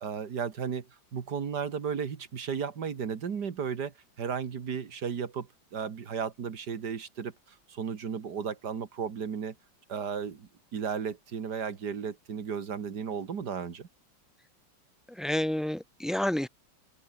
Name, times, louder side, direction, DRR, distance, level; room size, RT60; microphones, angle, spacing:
voice 1, 0.0-7.3 7.7-9.6 9.9-13.9, right 6 dB, 60° right, 2.2 m, -34 dB
voice 2, 15.1-16.5, left 1 dB, ahead, 2.1 m, -29 dB
open air
omnidirectional pair, 2.0 m